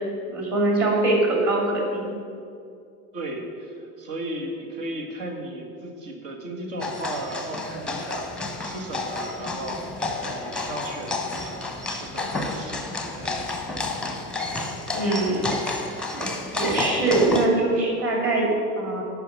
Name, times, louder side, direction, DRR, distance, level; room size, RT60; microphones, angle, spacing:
voice 1, 0.3-2.1 14.9-15.5 16.1-16.2 16.5-18.5 18.8-19.0, right 2 dB, 30° right, -1 dB, 2.6 m, -22 dB
voice 2, 3.1-13.4, right 1 dB, 60° right, 1 dB, 1.7 m, -36 dB
sound 1, 6.8-17.5, left 2 dB, ahead, 0.9 m, -30 dB
11.0 x 4.8 x 6.9 m, 2.4 s
figure-of-eight pair, 75°, 45 cm